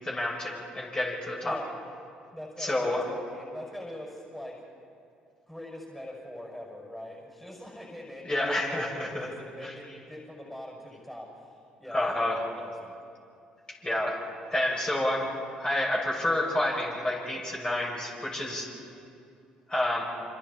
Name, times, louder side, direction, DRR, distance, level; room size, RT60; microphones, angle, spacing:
voice 1, 0.0-1.6 2.6-3.0 8.2-9.3 9.6-9.7 11.9-12.4 13.8-14.2 14.5-15.3 15.6-18.7 19.7-20.0, left 1 dB, 25° left, -4 dB, 6.8 m, -29 dB
voice 2, 2.3-4.6 5.5-11.3 11.8-12.9, left 1 dB, 5° left, -1 dB, 6.2 m, -42 dB
27.5 x 26.0 x 4.3 m, 2.5 s
hypercardioid pair, 55°, 4 cm